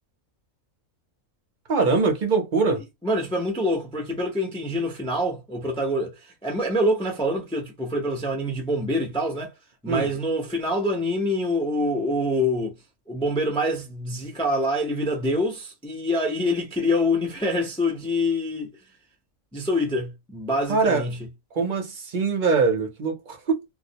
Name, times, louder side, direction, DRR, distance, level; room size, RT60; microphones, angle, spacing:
voice 1, 1.7-2.8 9.9-10.1 20.7-21.1 21.5-23.6, right 4 dB, 50° right, 0.6 m, -23 dB
voice 2, 3.0-9.5 9.8-12.7 13.1-18.7 19.5-21.2, left 1 dB, 5° left, 0.4 m, -25 dB
2.3 x 2.1 x 2.7 m
omnidirectional pair, 1.5 m